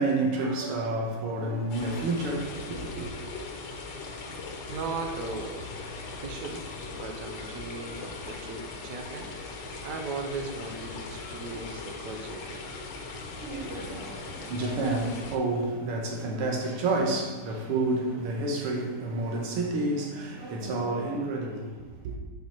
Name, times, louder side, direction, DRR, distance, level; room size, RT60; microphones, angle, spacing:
voice 1, 0.0-3.1 13.3-22.2, right 2 dB, 80° right, 1.9 m, -30 dB
sound 1, 1.7-15.4, left 3 dB, 65° left, 1.4 m, -39 dB
voice 2, 4.7-5.7 6.1-6.6 6.9-9.3 9.8-12.7, right 4 dB, 65° right, 1.1 m, -37 dB
5.5 x 5.3 x 4.4 m
omnidirectional pair, 2.4 m